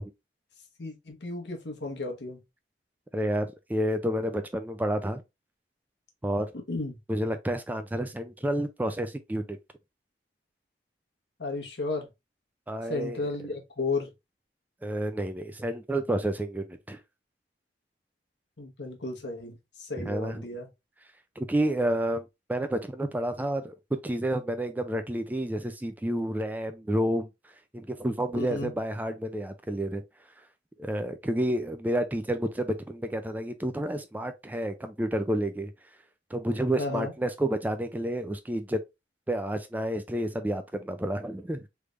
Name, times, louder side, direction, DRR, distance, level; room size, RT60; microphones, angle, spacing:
voice 1, 0.8-2.4 6.7-7.0 11.4-12.1 12.9-14.1 18.6-20.7 28.3-28.7 36.8-37.1, left 3 dB, 80° left, 1.0 m, -33 dB
voice 2, 3.1-5.2 6.2-6.5 7.1-9.6 12.7-13.2 14.8-17.0 20.0-20.4 21.4-23.8 24.0-27.3 27.7-30.0 30.8-35.7 36.3-38.8 39.3-41.7, right 1 dB, 10° right, 0.3 m, -30 dB
3.3 x 3.3 x 2.4 m
head